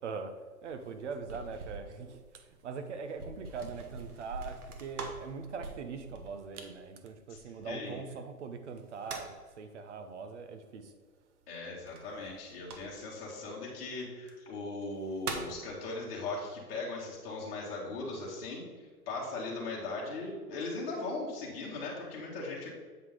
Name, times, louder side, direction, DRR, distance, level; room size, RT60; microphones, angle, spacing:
voice 1, 0.0-0.3 0.6-10.9, right 5 dB, 50° right, 8 dB, 0.8 m, -42 dB
sound 1, 0.6-8.0 8.7-9.5 11.9-13.2 14.1-14.3 14.8-15.6, right 3 dB, 75° right, 1.3 m, -45 dB
voice 2, 7.6-8.0 11.5-18.6 19.1-22.7, left 3 dB, 40° left, -5 dB, 2.1 m, -39 dB
7.9 x 4.9 x 3.8 m, 1.4 s
hypercardioid pair, 160°, 45 cm